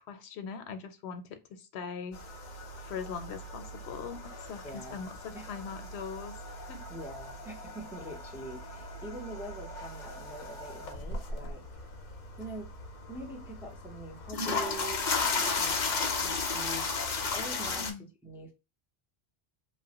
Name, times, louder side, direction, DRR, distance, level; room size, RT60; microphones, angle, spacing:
voice 1, 0.0-2.4 2.7-6.8 17.6-18.1, left 6 dB, 80° left, 0.8 m, -41 dB
sound 1, 2.1-17.9, left 4 dB, 55° left, 0.7 m, -36 dB
voice 2, 4.6-5.0 5.3-5.5 6.9-11.6 12.4-12.7 13.1-18.5, right 1 dB, 5° right, 0.4 m, -44 dB
2.9 x 2.1 x 2.8 m
omnidirectional pair, 1.1 m